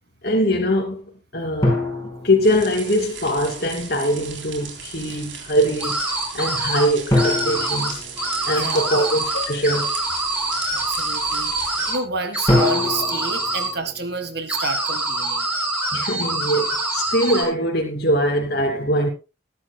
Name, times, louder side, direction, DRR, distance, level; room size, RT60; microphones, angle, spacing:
voice 1, 0.2-1.9 2.2-6.0 6.3-8.1 8.4-9.9 15.9-19.1, equal, 50° left, 2.8 m, -22 dB
sound 1, 1.6-3.2 7.1-9.0 12.5-14.7, left 1 dB, 15° left, 4.9 m, -24 dB
sound 2, 2.4-11.9, right 6 dB, 75° right, 3.5 m, -37 dB
sound 3, 5.8-6.9 7.2-7.9 8.2-12.0 12.3-13.7 14.5-17.4, right 2 dB, 5° right, 6.2 m, -25 dB
voice 2, 8.5-9.1 10.7-11.5 11.9-15.5, right 3 dB, 55° right, 1.8 m, -30 dB
20.5 x 11.5 x 2.3 m
head